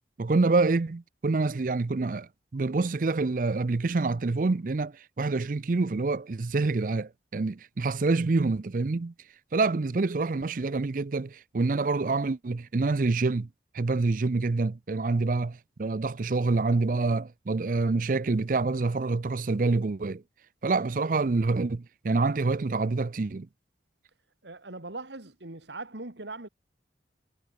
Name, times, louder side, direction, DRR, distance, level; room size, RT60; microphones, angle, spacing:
voice 1, 0.2-9.1 9.5-13.5 13.7-20.2 20.6-23.5, right 3 dB, 50° right, 0.5 m, -27 dB
voice 2, 24.4-26.5, right 2 dB, 80° right, 2.6 m, -40 dB
head